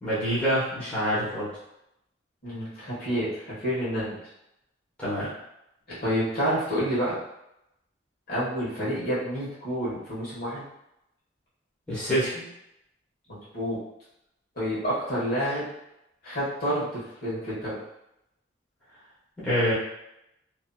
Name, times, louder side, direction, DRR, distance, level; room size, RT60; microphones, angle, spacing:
voice 1, 0.0-1.5 5.0-5.3 11.9-12.5 19.4-19.7, equal, 5° left, -12 dB, 1.1 m, -26 dB
voice 2, 2.4-4.2 5.9-7.1 8.3-10.6 13.3-13.8 14.6-15.7 16.2-17.8, equal, 55° left, -9 dB, 1.4 m, -29 dB
2.9 x 2.7 x 2.3 m, 0.84 s
head